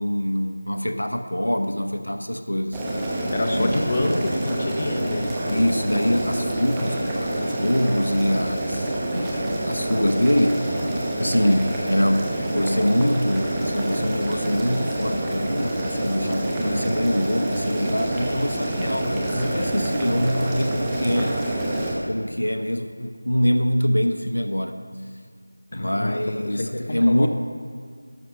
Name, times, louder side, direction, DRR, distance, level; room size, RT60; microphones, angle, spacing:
voice 1, 0.0-2.8 3.5-3.9 5.5-10.9 11.2-21.5 22.1-24.8 25.7-27.3, equal, 85° left, 7 dB, 0.9 m, -24 dB
Boiling, 2.7-21.9, right 1 dB, 10° right, 0.9 m, -27 dB
voice 2, 3.3-5.7 16.6-16.8 25.7-27.3, left 1 dB, 35° left, 3 dB, 0.9 m, -27 dB
12.5 x 7.4 x 5.3 m, 2.1 s
figure-of-eight pair, 170°, 0 cm